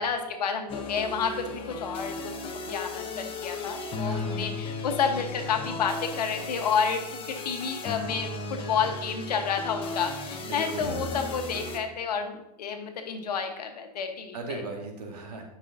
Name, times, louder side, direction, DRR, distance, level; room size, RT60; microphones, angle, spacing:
voice 1, 0.0-2.3 2.7-14.6, left 6 dB, 75° left, 5 dB, 1.3 m, -30 dB
sound 1, 0.7-11.8, left 3 dB, 25° left, 1.1 m, -36 dB
voice 2, 4.1-4.5 10.4-11.0 14.3-15.4, right 3 dB, 75° right, 1 dB, 2.0 m, -38 dB
12.5 x 5.5 x 2.8 m, 0.86 s
hypercardioid pair, 115°, 21 cm